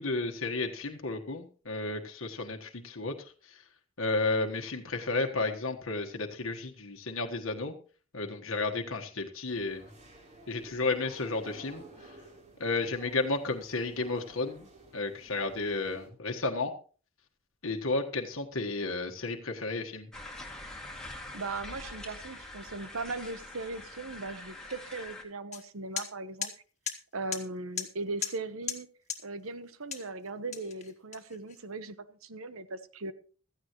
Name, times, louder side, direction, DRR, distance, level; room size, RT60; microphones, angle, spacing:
voice 1, 0.0-3.3 4.0-7.7 8.1-9.8 10.5-11.8 12.6-14.7 14.9-16.7 17.6-20.1, left 3 dB, 70° left, 3 dB, 1.5 m, -32 dB
sound 1, 9.5-16.1, right 1 dB, 35° right, 3.5 m, -53 dB
sound 2, 20.1-25.2, left 2 dB, 5° left, 2.3 m, -44 dB
voice 2, 21.3-26.5 27.1-28.9 29.2-33.1, right 3 dB, 75° right, 13 dB, 1.1 m, -38 dB
sound 3, 25.5-25.6 26.0-26.1 26.4-26.5 26.9-27.0 27.3-27.4 27.8-27.9 28.2-28.4 28.7-28.8 29.1-29.2 29.9-30.1 30.5-31.5, left 8 dB, 35° left, 1.7 m, -35 dB
16.0 x 14.0 x 3.1 m, 0.39 s
head